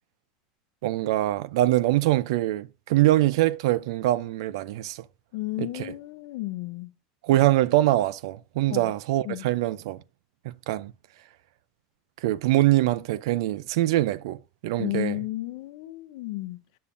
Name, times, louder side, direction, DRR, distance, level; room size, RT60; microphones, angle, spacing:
voice 1, 0.8-5.0 5.6-5.9 7.2-10.0 10.4-10.9 12.2-15.2, right 15 dB, 80° right, 0.4 m, -24 dB
voice 2, 5.3-6.9 8.7-8.9 9.3-9.4 14.8-16.6, left 19 dB, 70° left, 0.6 m, -32 dB
8.5 x 6.9 x 2.5 m
supercardioid pair, 155°, 3 cm